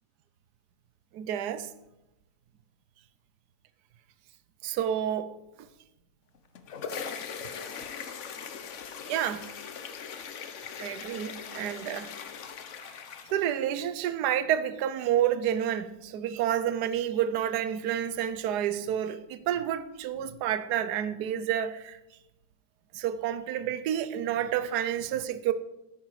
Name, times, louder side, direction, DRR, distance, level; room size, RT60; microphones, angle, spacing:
voice 1, 1.1-1.7 4.6-5.7 9.1-9.5 10.8-12.1 12.8-12.9 13.3-22.0 22.9-25.5, right 10 dB, 65° right, 1.0 m, -29 dB
sound 1, 6.3-13.8, left 6 dB, 85° left, 0.6 m, -40 dB
14.0 x 9.0 x 4.8 m
omnidirectional pair, 2.4 m